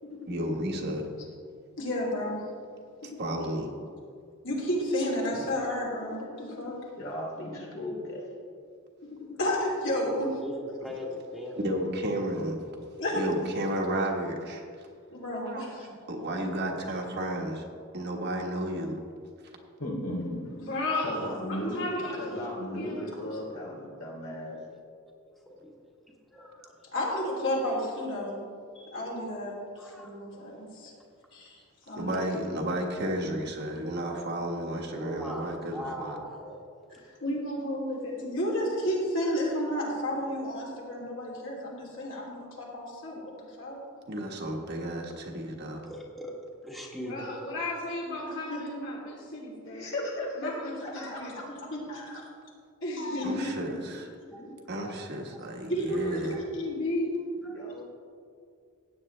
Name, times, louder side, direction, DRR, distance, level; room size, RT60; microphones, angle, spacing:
voice 1, 0.3-1.1 3.0-3.7 11.6-12.6 13.1-14.6 15.3-15.7 16.1-17.7 17.9-19.0 31.9-36.2 44.1-45.9 53.2-54.1 54.7-56.4, right 1 dB, 55° right, 1 dB, 1.4 m, -32 dB
voice 2, 1.8-2.4 3.0-3.3 4.4-6.8 9.0-10.3 13.0-13.2 15.1-15.9 20.6-22.4 22.7-23.5 26.9-28.4 28.7-29.6 29.8-30.9 31.3-31.6 31.9-32.2 36.9-43.2 43.6-43.8 47.0-49.9 50.4-51.8 52.8-53.8 55.7-57.1, left 1 dB, 65° left, -4 dB, 3.0 m, -32 dB
voice 3, 7.0-8.3 19.8-20.5 21.0-21.8 22.2-24.6 49.6-50.5 50.8-51.4 51.9-52.2 53.0-53.3 54.3-54.5 54.8-55.0 57.5-57.8, left 1 dB, 80° left, -2 dB, 3.0 m, -36 dB
voice 4, 10.0-11.6 24.5-24.8 25.5-25.7 26.3-26.7 29.8-30.1 35.0-35.4 35.7-36.6 45.8-46.3 46.6-47.3 54.3-54.4 57.5-57.6, equal, ahead, -2 dB, 1.3 m, -39 dB
16.0 x 9.0 x 3.3 m, 2.3 s
head